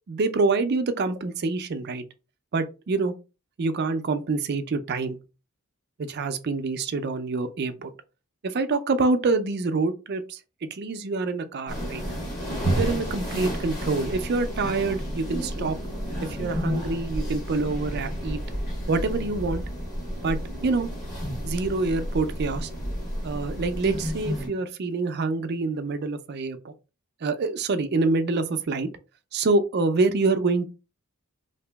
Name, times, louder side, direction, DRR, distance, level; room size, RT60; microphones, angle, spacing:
voice 1, 0.1-2.0 2.5-3.1 3.6-5.2 6.0-7.9 8.4-10.4 10.7-12.0 12.8-15.8 16.2-18.4 18.9-19.6 20.2-20.9 21.4-22.7 23.2-26.7 27.2-28.9 29.3-30.7, right 3 dB, 50° right, 0.4 m, -26 dB
sound 1, 11.7-24.5, equal, 35° left, 1.3 m, -31 dB
2.9 x 2.6 x 3.3 m
head